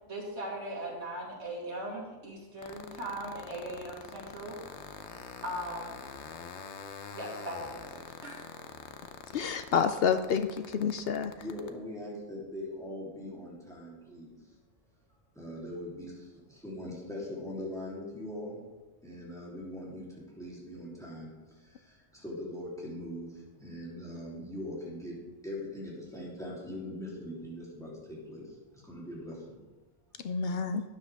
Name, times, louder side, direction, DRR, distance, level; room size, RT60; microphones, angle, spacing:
voice 1, 0.1-4.6 5.4-6.0 7.1-8.5, right 1 dB, 90° right, -3 dB, 2.8 m, -39 dB
sound 1, 2.6-11.7, left 6 dB, 85° left, 1.1 m, -44 dB
voice 2, 9.3-11.3 30.2-30.8, left 6 dB, 65° left, 9 dB, 0.7 m, -28 dB
voice 3, 11.4-14.3 15.3-18.6 19.0-21.3 21.7-23.3 23.6-25.2 25.4-28.4 28.8-29.4, left 1 dB, 5° left, -5 dB, 3.2 m, -41 dB
12.5 x 9.7 x 3.5 m, 1.2 s
omnidirectional pair, 1.1 m